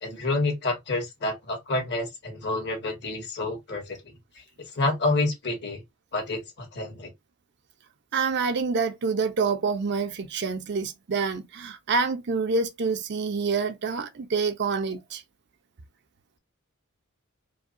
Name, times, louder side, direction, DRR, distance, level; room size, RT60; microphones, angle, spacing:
voice 1, 0.0-4.1 4.8-5.8 6.1-7.1, left 2 dB, 50° left, 1.8 m, -28 dB
voice 2, 8.1-15.2, right 4 dB, 55° right, 0.6 m, -27 dB
4.8 x 2.2 x 2.6 m
head